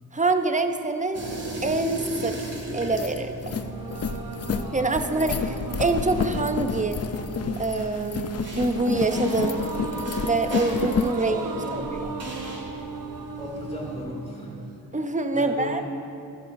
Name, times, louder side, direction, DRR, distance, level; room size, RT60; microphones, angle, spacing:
voice 1, 0.1-1.2 1.6-2.3 2.7-3.5 4.7-7.0 7.6-9.7 10.2-11.4 11.7-11.8 14.9-15.8, right 3 dB, 20° right, 7 dB, 0.6 m, -25 dB
sound 1, 1.1-14.1, right 1 dB, 40° right, 2.0 m, -39 dB
sound 2, 2.7-11.2, left 6 dB, 40° left, 0.4 m, -30 dB
sound 3, 3.4-14.8, right 4 dB, 55° right, 0.9 m, -36 dB
voice 2, 11.3-12.0 13.4-14.7 15.3-15.9, equal, 15° left, -3 dB, 2.5 m, -36 dB
15.0 x 11.0 x 2.6 m, 2.7 s
wide cardioid pair, 90°, 40 cm